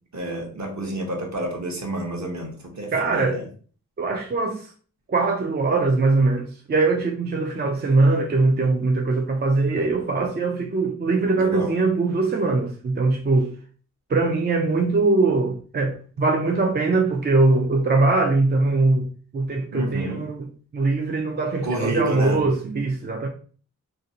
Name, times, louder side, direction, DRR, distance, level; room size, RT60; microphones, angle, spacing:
voice 1, 0.1-3.4 11.3-11.7 19.7-20.3 21.6-22.4, right 1 dB, 55° right, 1.0 m, -29 dB
voice 2, 2.9-3.4 4.0-4.7 5.1-13.5 14.1-19.1 19.3-20.5 20.7-23.3, right 3 dB, 30° right, 0.4 m, -21 dB
2.6 x 2.0 x 2.7 m
cardioid pair, 60°, 34 cm